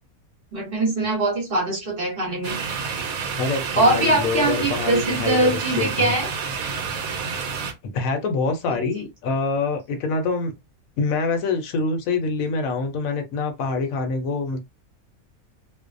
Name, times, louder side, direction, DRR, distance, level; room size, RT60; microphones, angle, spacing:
voice 1, 0.5-2.6 3.7-6.3 8.7-8.8, right 2 dB, 45° right, 1.0 m, -22 dB
sound 1, 2.4-7.7, right 6 dB, 75° right, 1.1 m, -29 dB
voice 2, 3.4-6.1 7.9-10.5 11.0-14.6, left 4 dB, 75° left, 1.0 m, -25 dB
2.5 x 2.1 x 2.4 m
omnidirectional pair, 1.5 m